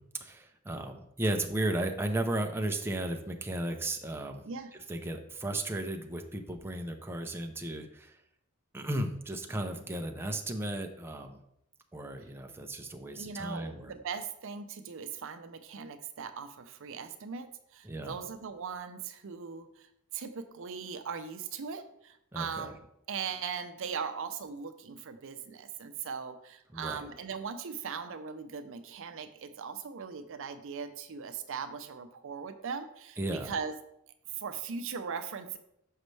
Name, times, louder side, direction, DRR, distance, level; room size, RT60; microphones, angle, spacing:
voice 1, 0.2-4.4 4.9-8.2 8.7-11.4 11.9-13.9 17.8-18.2 22.3-22.8 26.7-27.1 33.2-33.5, right 1 dB, 10° right, 4 dB, 0.5 m, -35 dB
voice 2, 13.1-19.9 20.1-22.8 23.1-33.2 33.4-33.7 34.3-35.6, right 6 dB, 65° right, 9 dB, 0.5 m, -39 dB
6.4 x 5.2 x 3.2 m, 0.76 s
head